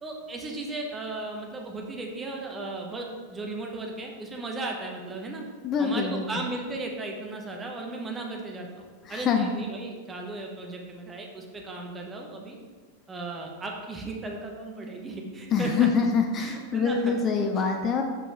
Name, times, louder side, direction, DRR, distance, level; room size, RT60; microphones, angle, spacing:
voice 1, 0.0-5.4 5.8-12.6 13.1-15.9 16.4-17.2, right 2 dB, 20° right, 1 dB, 1.0 m, -36 dB
voice 2, 5.6-6.2 9.1-9.5 15.5-18.0, left 5 dB, 30° left, 4 dB, 0.5 m, -25 dB
6.8 x 4.9 x 3.7 m, 1.5 s
figure-of-eight pair, 90°, 0 cm